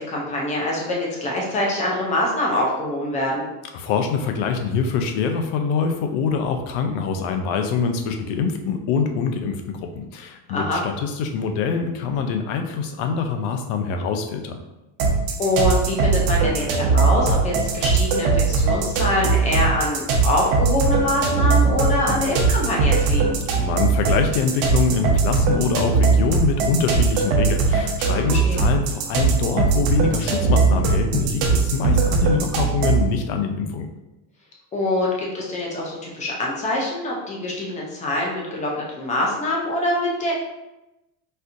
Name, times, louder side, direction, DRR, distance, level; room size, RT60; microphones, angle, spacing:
voice 1, 0.0-3.5 10.5-10.8 15.4-23.3 28.3-28.6 34.7-38.7 39.0-40.3, left 1 dB, 15° left, -3 dB, 0.3 m, -24 dB
voice 2, 3.7-14.6 23.6-33.9, left 5 dB, 65° left, 5 dB, 0.6 m, -24 dB
sound 1, 15.0-33.1, right 4 dB, 65° right, 0.8 m, -20 dB
4.3 x 2.5 x 2.5 m, 0.98 s
cardioid pair, 145°, 48 cm